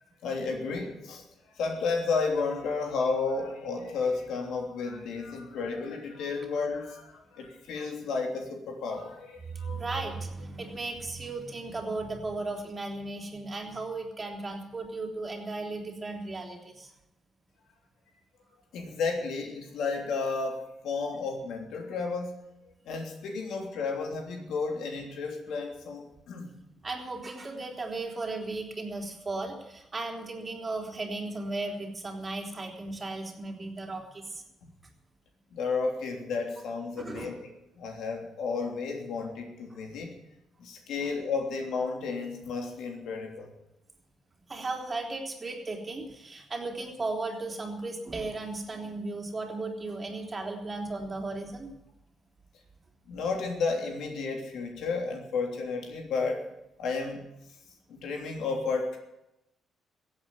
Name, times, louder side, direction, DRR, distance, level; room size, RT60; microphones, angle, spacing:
voice 1, 0.2-1.2 1.5-9.9 18.7-22.3 22.8-26.5 35.5-37.5 37.8-40.2 40.6-43.5 53.1-56.5 56.8-57.2 57.9-59.0, left 4 dB, 80° left, 2 dB, 3.2 m, -32 dB
voice 2, 9.5-16.9 26.8-34.4 37.0-37.3 41.0-41.1 44.5-51.7, right 3 dB, 30° right, 1 dB, 3.5 m, -36 dB
16.0 x 8.5 x 9.8 m, 0.88 s
cardioid pair, 90°, 0 cm